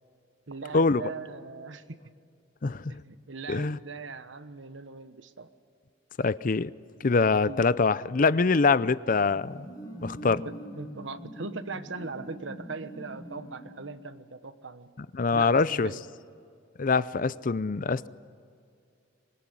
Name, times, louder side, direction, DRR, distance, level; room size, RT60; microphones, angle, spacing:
voice 1, 0.5-2.0 2.9-5.5 7.5-7.6 10.4-14.9 15.3-16.0, right 4 dB, 75° right, 11 dB, 1.2 m, -40 dB
voice 2, 2.6-2.9 3.5-3.8 6.2-6.7 7.0-9.6 10.0-10.4 15.0-15.9 16.8-18.1, left 4 dB, 45° left, 17 dB, 0.5 m, -24 dB
sound 1, 9.2-14.1, right 1 dB, 20° left, 6.6 m, -43 dB
25.0 x 21.0 x 10.0 m, 2.3 s
head